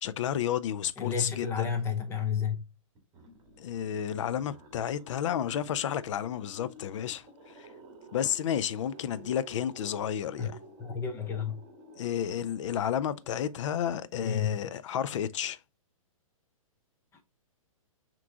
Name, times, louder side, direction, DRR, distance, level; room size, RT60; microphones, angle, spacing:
voice 1, 0.0-1.7 3.6-7.2 7.6-7.7 8.1-10.5 12.0-15.6, left 9 dB, 60° left, 0.4 m, -31 dB
voice 2, 1.0-2.6 10.4-10.5 10.8-11.6 14.2-14.6, left 7 dB, 15° left, 0.6 m, -31 dB
sound 1, 2.9-14.1, right 1 dB, 25° right, 1.7 m, -52 dB
5.9 x 3.0 x 2.3 m
hypercardioid pair, 140°, 18 cm